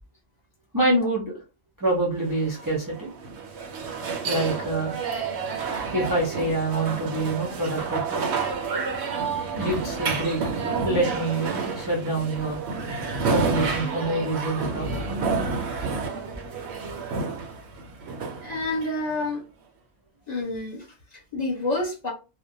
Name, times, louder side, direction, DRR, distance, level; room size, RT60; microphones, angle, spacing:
voice 1, 0.7-1.4 1.8-3.1 4.2-5.0 5.9-8.3 9.5-10.4 10.8-12.6 13.3-15.0, right 2 dB, 25° right, 0.4 m, -26 dB
sound 1, 2.3-19.3, right 4 dB, 65° right, 0.7 m, -30 dB
voice 2, 18.4-19.4 20.3-20.8 21.1-22.1, left 2 dB, 35° left, 0.9 m, -28 dB
2.3 x 2.1 x 2.6 m
omnidirectional pair, 1.4 m